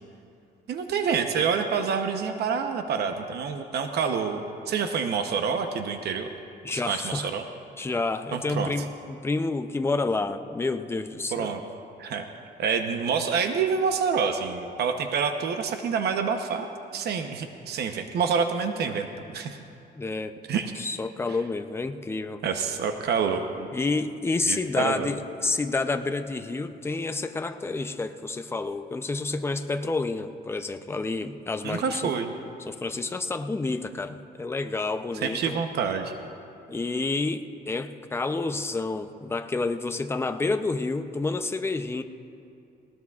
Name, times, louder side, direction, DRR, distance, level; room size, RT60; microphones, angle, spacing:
voice 1, 0.7-6.3 6.7-7.4 8.3-8.7 11.3-11.6 12.0-12.3 12.6-16.7 16.9-19.1 19.3-19.6 20.5-20.7 22.4-23.7 24.5-25.1 31.6-32.3 35.1-36.1, right 6 dB, 65° right, 6 dB, 0.8 m, -27 dB
voice 2, 6.6-7.3 7.8-11.5 19.9-20.3 20.8-22.4 23.7-32.1 32.7-35.6 36.7-42.0, left 3 dB, 15° left, 8 dB, 0.5 m, -29 dB
19.0 x 18.5 x 2.4 m, 2.5 s
cardioid pair, 140°, 18 cm